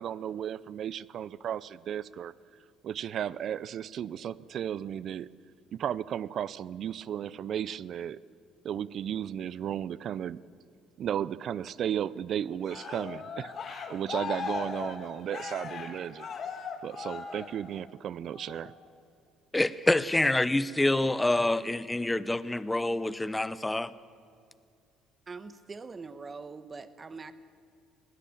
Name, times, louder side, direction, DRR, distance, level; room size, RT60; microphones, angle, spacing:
voice 1, 0.0-2.3 2.8-5.3 5.7-8.2 8.6-10.4 11.0-16.3 16.8-18.7, right 9 dB, 55° right, 19 dB, 0.5 m, -34 dB
Cheering, 12.6-17.9 18.3-18.7, left 5 dB, 50° left, 2.4 m, -38 dB
voice 2, 19.5-23.9, left 2 dB, 10° left, 16 dB, 0.8 m, -27 dB
voice 3, 25.3-27.3, right 4 dB, 30° right, 12 dB, 1.3 m, -43 dB
21.0 x 17.0 x 8.6 m, 2.2 s
supercardioid pair, 90°, 0 cm